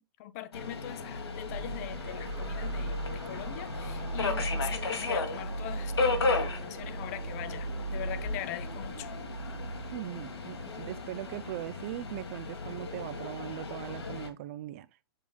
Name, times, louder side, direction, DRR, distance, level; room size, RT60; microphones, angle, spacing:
voice 1, 0.0-9.1, left 13 dB, 35° left, 0.7 m, -42 dB
Subway metro underground, 0.5-14.3, left 3 dB, 75° left, 1.7 m, -35 dB
sound 1, 1.4-12.8, right 2 dB, 75° right, 1.7 m, -38 dB
voice 2, 9.9-14.9, right 15 dB, 35° right, 0.4 m, -40 dB
7.2 x 6.9 x 2.3 m
hypercardioid pair, 125°, 13 cm